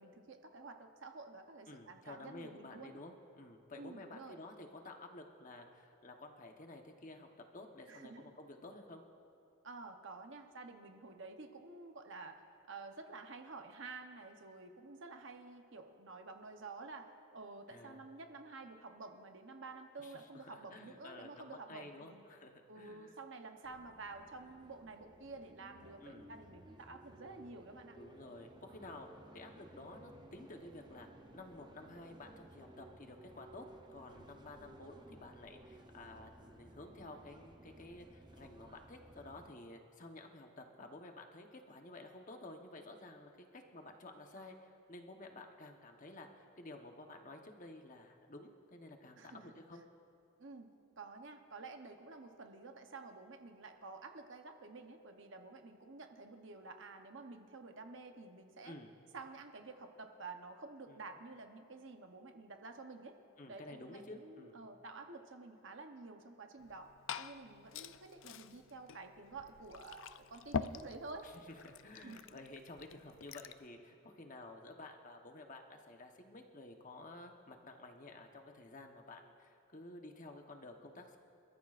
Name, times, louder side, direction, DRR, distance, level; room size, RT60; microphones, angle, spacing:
voice 1, 0.0-3.0 3.8-4.4 7.9-8.3 9.6-12.4 12.7-22.2 22.7-28.0 49.2-49.5 50.4-50.7 51.0-58.7 59.1-63.1 63.5-66.9 67.2-71.3 71.9-72.4, right 3 dB, 55° right, 5 dB, 0.9 m, -50 dB
voice 2, 1.7-9.0 17.7-18.0 20.0-23.2 26.0-26.3 28.0-29.1 29.3-49.8 58.6-58.9 60.9-61.0 63.4-64.6 71.2-71.3 71.6-81.2, left 2 dB, 35° left, 3 dB, 1.0 m, -52 dB
sound 1, 23.6-39.5, right 1 dB, 20° right, 0.6 m, -58 dB
Liquid, 66.6-73.7, left 6 dB, 60° left, 0.4 m, -46 dB
28.0 x 14.0 x 2.5 m, 2.7 s
head